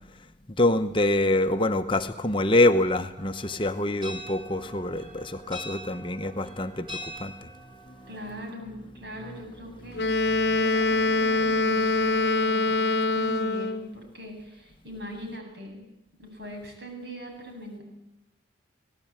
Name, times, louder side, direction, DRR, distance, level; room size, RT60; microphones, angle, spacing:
voice 1, 0.6-7.5, left 2 dB, 25° left, 7 dB, 0.9 m, -25 dB
sound 1, 3.2-8.3, equal, 25° right, 3.6 m, -43 dB
voice 2, 8.1-15.9 16.2-17.8, equal, 60° right, 2 dB, 8.0 m, -41 dB
Wind instrument woodwind instrument, 10.0-13.9, left 2 dB, 60° left, 1.0 m, -24 dB
25.0 x 18.0 x 8.9 m, 0.87 s
head